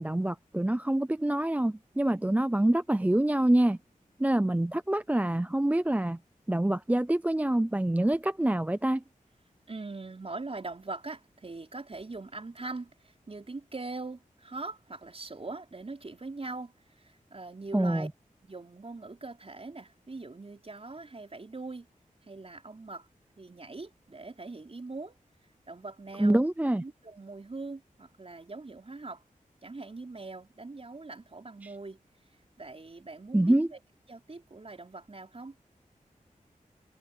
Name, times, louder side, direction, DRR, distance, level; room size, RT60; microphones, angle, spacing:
voice 1, 0.0-3.8 4.2-6.2 6.5-9.0 17.7-18.1 26.2-26.8 33.3-33.7, right 1 dB, 10° right, 0.5 m, -26 dB
voice 2, 9.7-18.1 18.4-21.9 22.2-23.1 23.4-25.2 25.7-26.4 26.8-29.2 29.6-32.0 32.6-33.8 34.1-35.5, right 3 dB, 45° right, 5.0 m, -42 dB
wide cardioid pair, 60°, 14 cm